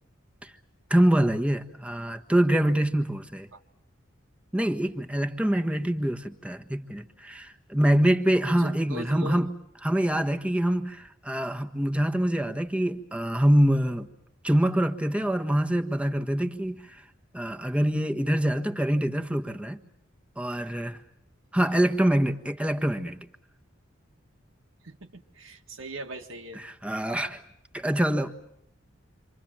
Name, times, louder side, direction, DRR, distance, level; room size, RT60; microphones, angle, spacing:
voice 1, 0.9-3.5 4.5-9.5 9.8-14.1 14.4-16.8 17.3-19.8 20.4-21.0 21.5-23.2 26.5-27.4 27.7-28.3, right 1 dB, 5° right, 6 dB, 1.4 m, -25 dB
voice 2, 8.6-9.4 21.7-21.9 24.8-26.6, right 1 dB, 85° right, 3 dB, 1.8 m, -40 dB
28.5 x 25.5 x 7.6 m, 0.76 s
head